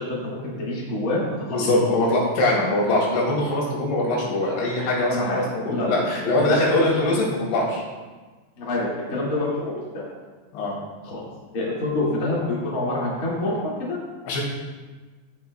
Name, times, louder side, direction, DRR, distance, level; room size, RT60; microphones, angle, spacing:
voice 1, 0.0-1.9 5.1-5.4 5.7-7.0 8.6-10.0 11.0-11.2 11.5-14.0, left 2 dB, 55° left, -6 dB, 0.9 m, -27 dB
voice 2, 1.5-7.8 10.5-10.7 14.3-14.5, left 1 dB, 75° left, -4 dB, 4.5 m, -22 dB
15.0 x 6.5 x 2.2 m, 1.3 s
omnidirectional pair, 5.4 m